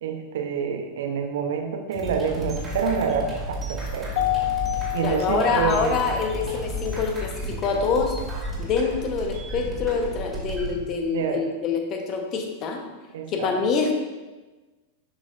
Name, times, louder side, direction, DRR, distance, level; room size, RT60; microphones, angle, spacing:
voice 1, 0.0-4.1 4.9-6.0 11.1-11.4 13.1-13.5, right 6 dB, 55° right, 4 dB, 0.8 m, -27 dB
sound 1, 1.9-10.8, equal, 15° right, 2.1 m, -33 dB
Keyboard (musical), 4.1-6.4, left 16 dB, 50° left, 0.4 m, -28 dB
voice 2, 5.0-8.1 8.6-12.8 13.3-14.0, left 5 dB, 35° left, 4 dB, 0.9 m, -25 dB
11.0 x 5.0 x 2.5 m, 1.2 s
figure-of-eight pair, 90°, 0 cm